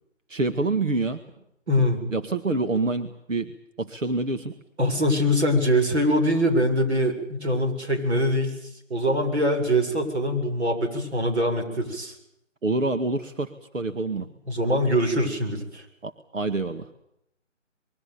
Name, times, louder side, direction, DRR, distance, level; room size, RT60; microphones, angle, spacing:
voice 1, 0.3-1.2 2.1-4.5 12.6-14.3 16.0-16.9, right 3 dB, 90° right, 8 dB, 2.1 m, -27 dB
voice 2, 1.7-2.0 4.8-8.6 8.9-12.2 14.5-15.8, equal, 60° right, 4 dB, 7.8 m, -23 dB
26.0 x 22.5 x 7.1 m, 0.77 s
figure-of-eight pair, 165°, 37 cm